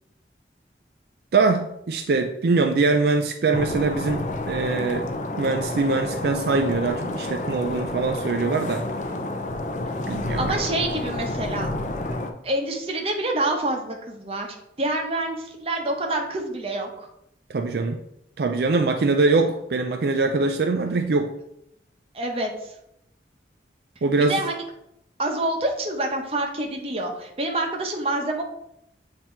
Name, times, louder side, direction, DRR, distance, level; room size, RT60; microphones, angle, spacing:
voice 1, 1.3-5.1 5.4-8.8 10.1-10.6 17.5-18.0 18.4-21.3 24.0-24.3, right 3 dB, 65° right, 5 dB, 0.4 m, -23 dB
sound 1, 3.5-12.3, left 2 dB, 45° left, 0.5 m, -30 dB
voice 2, 10.4-11.7 12.4-14.5 14.8-17.1 22.1-22.7 24.3-24.6 25.2-28.4, right 2 dB, 35° right, 2 dB, 0.9 m, -27 dB
7.6 x 2.9 x 4.4 m, 0.79 s
head